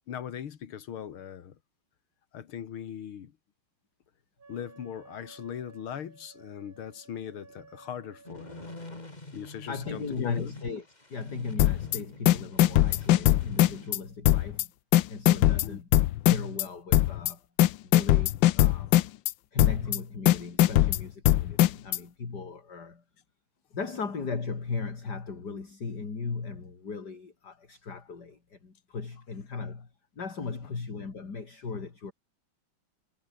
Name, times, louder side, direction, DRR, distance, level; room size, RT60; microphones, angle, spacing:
voice 1, 0.1-1.6 2.3-3.3 4.5-8.7 9.3-10.5 15.4-15.8, left 9 dB, 90° left, 2.4 m, -40 dB
Wind instrument woodwind instrument, 4.4-8.9, right 4 dB, 65° right, 4.9 m, -55 dB
sound 1, 8.2-13.9, left 2 dB, 20° left, 3.0 m, -45 dB
voice 2, 9.7-10.8 11.1-14.7 15.1-15.9 16.3-17.5 17.8-19.1 19.5-23.0 23.7-29.9 30.2-32.1, left 4 dB, 50° left, 3.6 m, -37 dB
sound 2, 11.6-12.0 12.3-14.0 14.3-14.6 14.9-16.6 16.9-17.3 17.6-19.3 19.6-20.0 20.3-22.0, left 14 dB, 70° left, 1.3 m, -21 dB
omnidirectional pair, 2.3 m